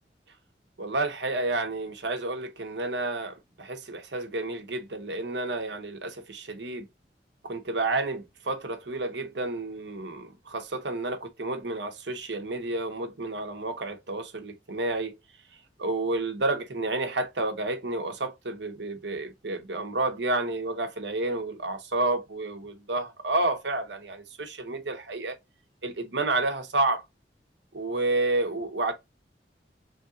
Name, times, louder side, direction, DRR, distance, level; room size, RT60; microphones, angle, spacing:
voice 1, 0.8-6.9 7.4-15.2 15.8-25.4 25.8-27.0 27.7-28.9, right 2 dB, 75° right, 1.0 m, -30 dB
3.4 x 2.7 x 3.7 m
head